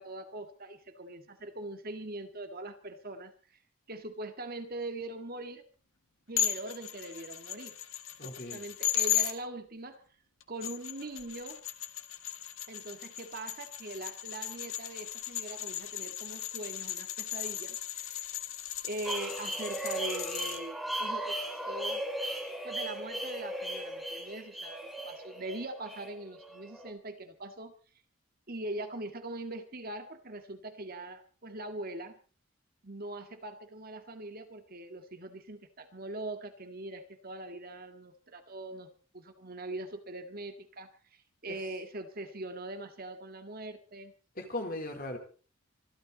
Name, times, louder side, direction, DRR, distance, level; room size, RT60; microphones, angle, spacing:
voice 1, 0.0-3.3 3.9-5.7 6.3-7.7 8.2-10.0 10.5-11.6 12.7-18.3 18.8-22.0 22.6-27.7 28.5-32.1 32.8-38.9 39.1-44.1, right 2 dB, 45° right, 7 dB, 2.0 m, -42 dB
sound 1, 6.4-9.3 10.4-20.6, left 11 dB, 75° left, 1.6 m, -36 dB
voice 2, 8.2-8.6 41.5-41.6 44.4-45.2, left 1 dB, 45° left, 4 dB, 3.8 m, -38 dB
sound 2, 19.0-26.9, right 1 dB, ahead, 3.3 m, -37 dB
25.0 x 12.5 x 4.1 m, 0.38 s
head